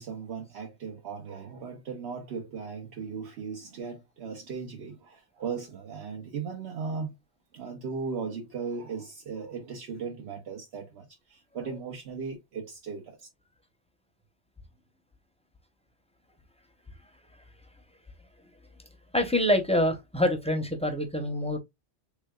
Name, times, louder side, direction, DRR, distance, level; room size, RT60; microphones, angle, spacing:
voice 1, 0.0-7.1 7.5-13.3, right 5 dB, 75° right, 1.0 m, -37 dB
voice 2, 19.1-21.6, left 1 dB, 5° left, 0.6 m, -26 dB
3.5 x 3.4 x 2.2 m
omnidirectional pair, 1.1 m